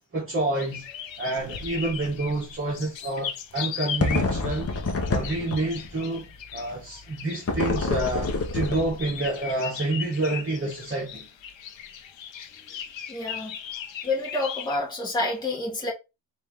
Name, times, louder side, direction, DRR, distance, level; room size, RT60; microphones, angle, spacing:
voice 1, 0.1-0.8 1.2-4.8 5.1-11.3, right 2 dB, 30° right, 1.2 m, -28 dB
sound 1, 0.6-14.8, left 8 dB, 75° left, 0.8 m, -38 dB
sound 2, 1.5-1.7 2.1-2.2 4.0-5.9 7.5-9.2, left 3 dB, 30° left, 0.9 m, -27 dB
voice 2, 13.1-13.6 14.0-15.9, left 2 dB, 10° left, 1.5 m, -28 dB
4.4 x 2.8 x 3.5 m
cardioid pair, 115°, 45 cm